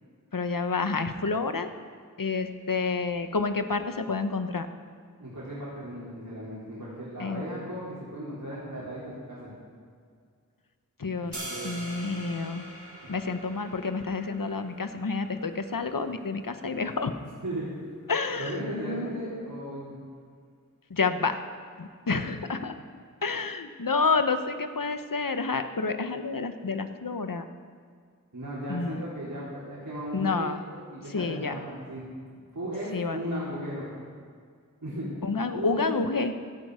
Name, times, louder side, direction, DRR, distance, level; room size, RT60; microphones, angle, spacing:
voice 1, 0.3-1.7 2.2-4.7 7.2-7.4 11.0-12.7 13.1-17.1 18.1-19.1 20.9-21.4 21.8-22.7 23.2-27.4 28.7-29.0 30.1-30.6 31.1-31.6 32.9-33.2 35.2-36.3, left 4 dB, 80° left, 9 dB, 0.9 m, -29 dB
voice 2, 5.2-9.5 11.5-11.8 17.4-17.7 18.4-20.0 28.3-32.1 32.5-33.8 34.8-35.1 35.5-35.9, right 1 dB, 75° right, -9 dB, 3.8 m, -36 dB
sound 1, 11.3-17.4, right 1 dB, 60° right, 3.3 m, -44 dB
16.5 x 11.0 x 4.9 m, 2.1 s
wide cardioid pair, 40°, 33 cm